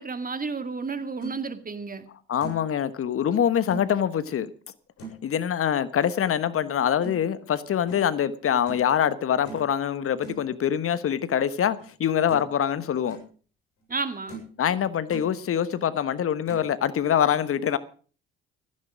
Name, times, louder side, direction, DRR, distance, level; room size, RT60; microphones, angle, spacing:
voice 1, 0.0-2.1 13.9-14.4, right 4 dB, 25° right, 2.2 m, -32 dB
sound 1, 0.9-1.4 1.9-2.0 2.4-2.7 3.7-3.9 5.0-5.3 7.0-7.2 7.9-8.1 8.7-8.9 9.4-9.7 10.2-10.4 11.8-11.9 12.3-12.6 12.9-13.2 13.8-13.9 14.3-14.6 14.9-15.3 16.5-16.7, right 3 dB, 60° left, 7.6 m, -40 dB
voice 2, 2.3-4.5 5.2-13.2 14.6-17.8, left 9 dB, 45° left, 1.2 m, -24 dB
15.5 x 15.0 x 4.9 m
hypercardioid pair, 50°, 31 cm